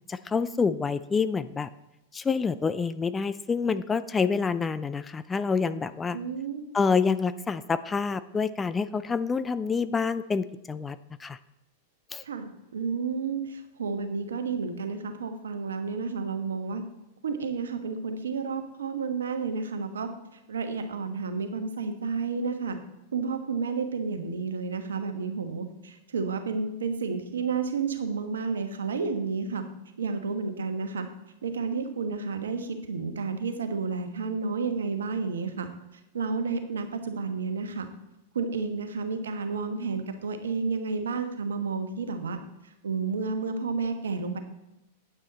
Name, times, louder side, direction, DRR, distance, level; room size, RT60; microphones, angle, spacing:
voice 1, 0.1-1.7 2.1-6.2 6.7-11.4 12.1-12.2, left 5 dB, 15° left, 14 dB, 0.4 m, -27 dB
voice 2, 6.1-6.6 12.2-16.8 17.2-20.1 20.5-22.8 23.1-29.6 30.0-31.1 31.4-35.7 36.1-37.9 38.3-42.4 42.6-44.4, right 5 dB, 75° right, 7 dB, 1.2 m, -31 dB
9.1 x 8.9 x 4.2 m, 0.93 s
figure-of-eight pair, 95°, 0 cm